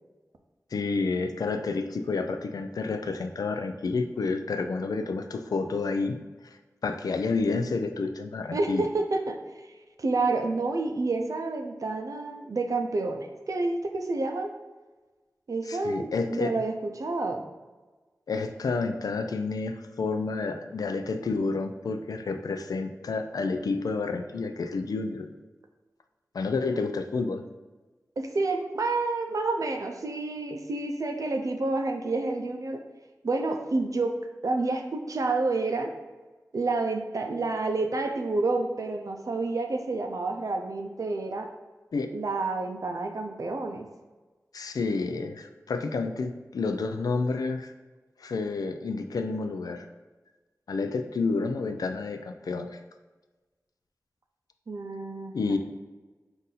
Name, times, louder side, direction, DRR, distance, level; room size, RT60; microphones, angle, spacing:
voice 1, 0.7-6.2 6.8-8.8 15.7-16.5 18.3-25.3 26.3-27.4 41.9-42.1 44.5-47.7 48.2-49.9 50.7-52.8 55.3-55.6, left 4 dB, 80° left, 7 dB, 0.3 m, -29 dB
voice 2, 8.5-9.4 10.0-14.5 15.5-17.4 28.2-32.8 33.2-35.9 36.5-41.5 42.1-43.9 54.7-55.6, right 3 dB, 65° right, 5 dB, 0.5 m, -29 dB
4.0 x 2.6 x 3.8 m, 1.3 s
cardioid pair, 40°, 6 cm